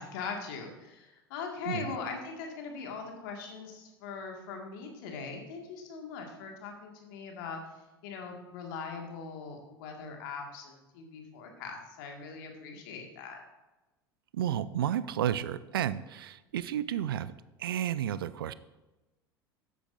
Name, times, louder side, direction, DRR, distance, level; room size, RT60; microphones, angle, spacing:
voice 1, 0.0-7.6 8.0-13.4, left 5 dB, 55° left, 2 dB, 1.8 m, -41 dB
voice 2, 1.7-2.0 14.3-17.3 17.6-18.5, right 10 dB, 65° right, 17 dB, 0.4 m, -32 dB
13.0 x 9.1 x 2.6 m, 1.1 s
figure-of-eight pair, 75°, 13 cm